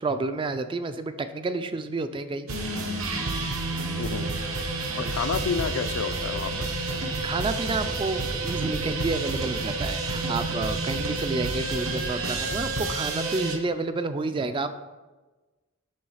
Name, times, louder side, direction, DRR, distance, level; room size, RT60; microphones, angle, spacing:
voice 1, 0.0-2.5 5.0-5.1 7.2-14.7, right 3 dB, 25° right, 10 dB, 0.3 m, -30 dB
sound 1, 2.5-13.6, right 2 dB, 75° right, 0.9 m, -29 dB
voice 2, 4.0-4.3 4.9-6.7, left 6 dB, 70° left, 11 dB, 0.4 m, -30 dB
7.7 x 3.2 x 5.5 m, 1.2 s
head